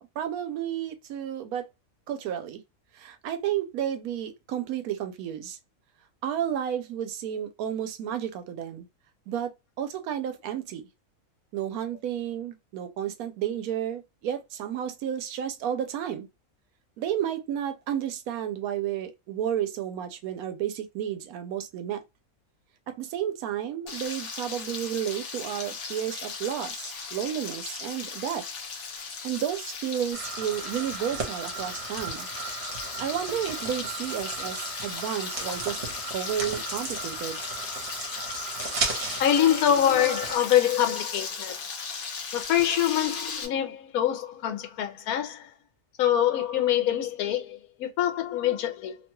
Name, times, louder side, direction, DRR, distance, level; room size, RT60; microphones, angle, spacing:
voice 1, 0.2-1.7 2.1-2.6 2.9-5.6 6.2-8.9 9.3-9.5 9.8-10.8 11.5-16.3 17.0-22.0 22.9-28.5 29.2-32.3 33.0-35.8 36.1-37.4, right 10 dB, 90° right, 1.1 m, -32 dB
Frying (food), 23.9-43.5, left 5 dB, 65° left, 0.9 m, -37 dB
sound 1, 30.1-40.4, right 4 dB, 55° right, 1.1 m, -36 dB
voice 2, 39.2-41.5 42.3-45.5 46.0-49.0, left 10 dB, 90° left, 1.1 m, -25 dB
2.8 x 2.2 x 2.9 m
omnidirectional pair, 1.5 m